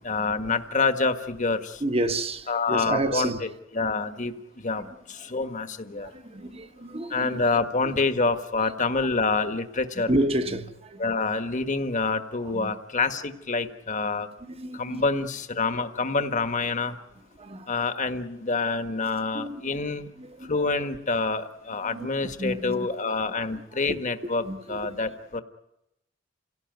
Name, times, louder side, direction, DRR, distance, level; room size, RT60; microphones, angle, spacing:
voice 1, 0.0-1.8 2.5-3.5 3.7-4.3 4.6-4.8 5.1-6.1 7.1-10.1 11.0-14.3 14.7-16.9 17.7-20.1 20.5-25.4, left 4 dB, 40° left, 1.4 m, -27 dB
voice 2, 1.8-3.4 4.7-4.9 5.2-5.4 5.9-7.4 8.6-8.7 10.1-11.1 12.4-12.7 14.5-15.0 17.4-17.7 19.3-19.8 20.2-20.6 21.8-22.9 23.5-24.0 24.4-24.8, right 1 dB, 30° right, 1.2 m, -31 dB
28.0 x 17.5 x 9.3 m
head